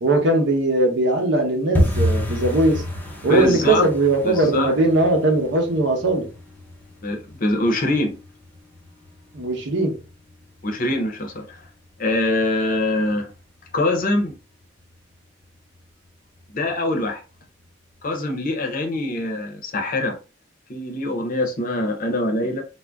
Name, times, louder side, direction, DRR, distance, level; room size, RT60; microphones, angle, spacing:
voice 1, 0.0-2.8 3.2-6.3 9.3-10.0, right 2 dB, 65° right, 0.8 m, -19 dB
sound 1, 1.7-12.5 12.7-13.4 13.7-14.0 14.2-14.6 14.9-15.0 15.5-16.1 16.4-16.5 17.0-17.1, equal, 10° left, 0.5 m, -30 dB
voice 2, 3.3-3.9 4.2-4.7 7.0-8.1 10.6-11.6 12.0-13.3 13.7-14.3 16.5-17.2 18.0-20.2 20.7-22.6, left 2 dB, 45° left, 0.6 m, -23 dB
2.5 x 2.1 x 3.3 m
head